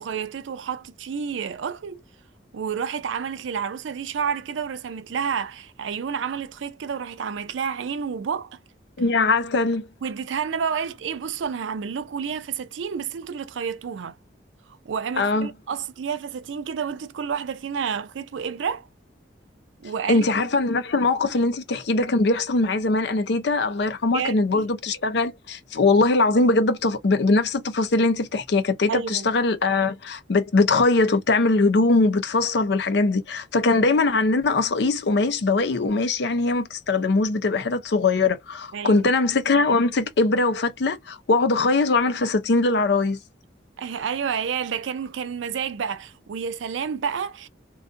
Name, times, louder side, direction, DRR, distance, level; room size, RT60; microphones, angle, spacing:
voice 1, 0.0-2.0 2.5-8.6 10.0-14.2 14.8-18.9 19.8-20.2 24.1-24.7 28.9-29.3 38.7-39.1 43.8-47.5, right 7 dB, 85° right, 0.4 m, -30 dB
voice 2, 9.0-9.9 15.2-15.5 20.1-43.2, left 3 dB, 65° left, 0.5 m, -21 dB
2.5 x 2.3 x 2.4 m
head